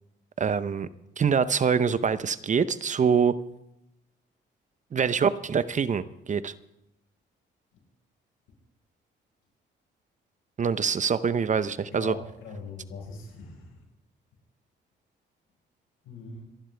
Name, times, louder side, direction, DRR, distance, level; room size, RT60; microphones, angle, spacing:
voice 1, 0.4-0.9 1.2-3.3 4.9-6.5 10.6-12.2, right 6 dB, 40° right, 14 dB, 0.8 m, -25 dB
voice 2, 11.8-13.8 16.0-16.5, left 4 dB, 90° left, 0 dB, 5.0 m, -41 dB
27.5 x 11.5 x 3.4 m, 0.85 s
cardioid pair, 90°, 20 cm